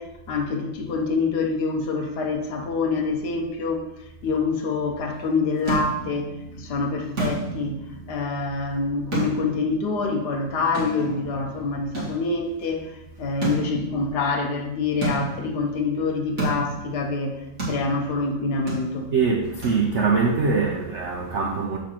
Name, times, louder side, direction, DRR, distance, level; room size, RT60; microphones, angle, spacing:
voice 1, 0.0-3.9 4.2-7.8 8.1-17.4 17.7-19.1, left 4 dB, 65° left, 1.3 m, -26 dB
sound 1, 5.1-20.3, right 3 dB, 35° right, 2.6 m, -34 dB
voice 2, 19.1-21.8, right 4 dB, 65° right, 0.7 m, -23 dB
6.8 x 5.2 x 4.3 m
omnidirectional pair, 2.1 m